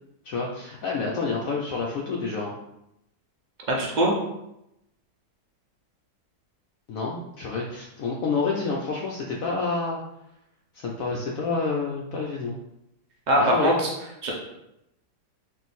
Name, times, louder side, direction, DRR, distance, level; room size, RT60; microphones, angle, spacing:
voice 1, 0.2-2.5 6.9-10.0 10.7-12.6 13.4-13.8, left 4 dB, 70° left, -2 dB, 0.8 m, -28 dB
voice 2, 3.7-4.1 13.3-13.9 14.2-14.3, equal, 60° right, -2 dB, 0.4 m, -21 dB
3.7 x 2.5 x 4.1 m, 0.85 s
omnidirectional pair, 1.9 m